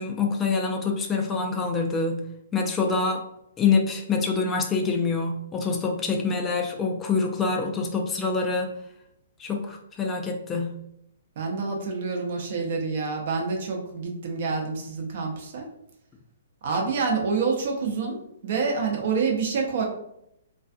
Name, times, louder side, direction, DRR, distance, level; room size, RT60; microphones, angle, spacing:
voice 1, 0.0-2.2 2.5-3.3 3.6-8.7 9.4-10.8, left 4 dB, 20° left, 2 dB, 0.3 m, -26 dB
voice 2, 11.4-15.7 16.6-19.9, right 4 dB, 55° right, 1 dB, 0.6 m, -27 dB
2.4 x 2.3 x 2.5 m, 0.78 s
figure-of-eight pair, 120°, 0 cm